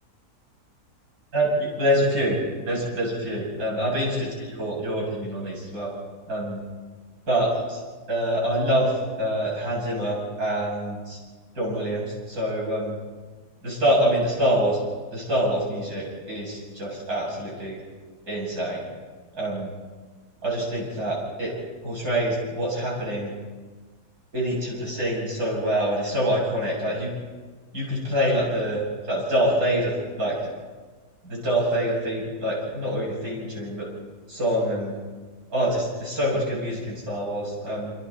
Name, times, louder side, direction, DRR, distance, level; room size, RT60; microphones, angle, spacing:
voice 1, 1.3-4.3 4.5-5.9 6.3-6.6 7.3-7.8 8.1-11.2 11.6-13.0 13.6-14.8 15.1-17.8 18.3-18.8 19.3-19.7 20.4-21.5 21.8-23.3 24.3-27.1 27.7-28.8 29.1-30.4 31.2-33.9 34.3-34.9 35.5-37.9, right 1 dB, 60° right, -5 dB, 8.3 m, -25 dB
29.0 x 26.5 x 4.3 m, 1.4 s
omnidirectional pair, 1.8 m